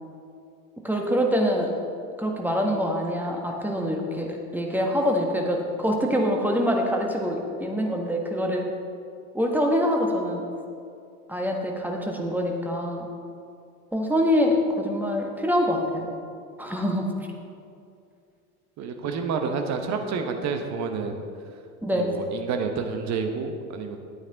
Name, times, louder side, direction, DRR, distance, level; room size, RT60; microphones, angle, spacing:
voice 1, 0.8-1.7 2.2-8.7 9.3-10.4 11.3-13.1 13.9-16.1 16.6-17.1 21.8-22.1, equal, 5° right, 1 dB, 1.4 m, -25 dB
voice 2, 18.8-21.2 21.9-24.0, right 5 dB, 40° right, 5 dB, 1.1 m, -29 dB
11.0 x 8.8 x 4.0 m, 2.4 s
figure-of-eight pair, 75°, 44 cm